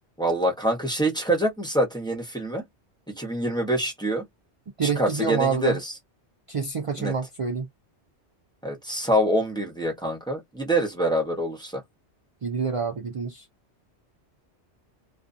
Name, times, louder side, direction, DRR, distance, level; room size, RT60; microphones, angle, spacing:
voice 1, 0.2-2.6 3.1-4.2 4.8-5.9 7.0-7.2 8.6-11.8, right 1 dB, 5° left, 0.7 m, -25 dB
voice 2, 4.8-5.8 6.5-7.6 12.4-13.4, right 5 dB, 55° right, 0.3 m, -27 dB
2.4 x 2.2 x 2.5 m
omnidirectional pair, 1.2 m